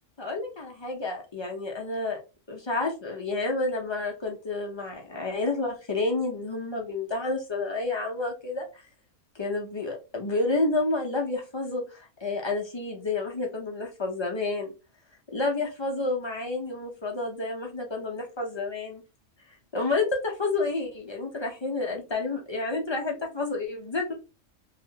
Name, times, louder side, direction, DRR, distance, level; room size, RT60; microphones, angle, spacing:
voice 1, 0.2-2.2 2.5-8.8 9.3-14.7 15.3-19.0 19.7-24.1, left 3 dB, 35° left, 1 dB, 0.4 m, -30 dB
2.8 x 2.4 x 2.7 m, 0.30 s
omnidirectional pair, 1.3 m